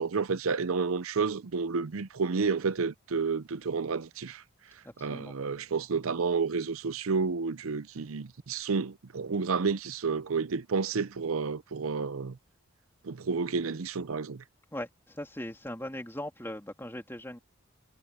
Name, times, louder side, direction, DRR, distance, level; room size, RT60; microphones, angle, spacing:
voice 1, 0.0-4.4 4.7-12.4 13.0-14.4, right 5 dB, 80° right, 0.6 m, -30 dB
voice 2, 4.8-5.3 14.7-17.4, left 1 dB, 10° left, 2.9 m, -39 dB
head